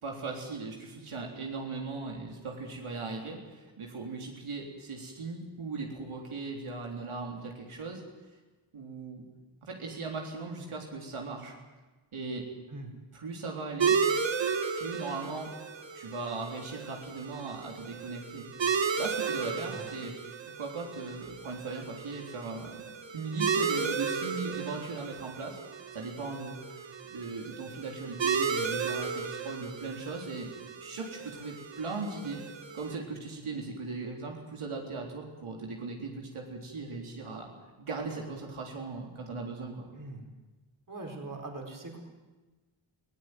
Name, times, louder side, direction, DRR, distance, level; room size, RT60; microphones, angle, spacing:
voice 1, 0.0-8.0 8.7-9.3 9.6-11.5 12.1-12.5 13.1-14.0 14.7-15.5 15.9-18.5 19.0-20.1 20.4-22.8 23.1-25.6 25.9-26.6 27.1-30.5 30.8-32.4 32.7-37.5 37.8-39.9, right 3 dB, 80° right, 0 dB, 3.8 m, -38 dB
sound 1, 13.8-32.9, right 6 dB, 60° right, 1.9 m, -34 dB
voice 2, 40.9-42.0, right 2 dB, 40° right, 2 dB, 4.6 m, -41 dB
21.0 x 18.0 x 9.3 m, 1.2 s
wide cardioid pair, 95°, 49 cm